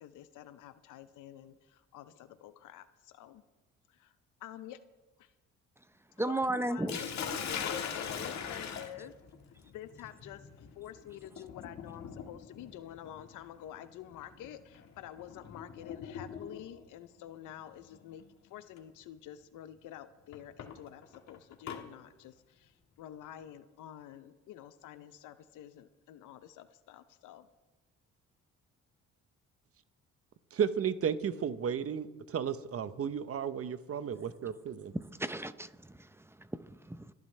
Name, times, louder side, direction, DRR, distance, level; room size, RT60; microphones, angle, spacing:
voice 1, 0.0-3.4 3.9-4.1 4.4-4.8 5.2-5.3 6.3-7.6 7.9-9.1 9.7-18.2 18.5-27.5, left 11 dB, 85° left, 0.7 m, -49 dB
voice 2, 6.2-7.0 34.9-37.1, right 1 dB, 10° right, 0.7 m, -35 dB
Sink (filling or washing), 6.9-16.8 17.9-18.2 18.8-18.9 20.3-21.8, left 7 dB, 65° left, 1.7 m, -41 dB
voice 3, 30.5-34.9, right 7 dB, 50° right, 0.9 m, -33 dB
29.5 x 10.5 x 3.3 m
cardioid pair, 90°, 30 cm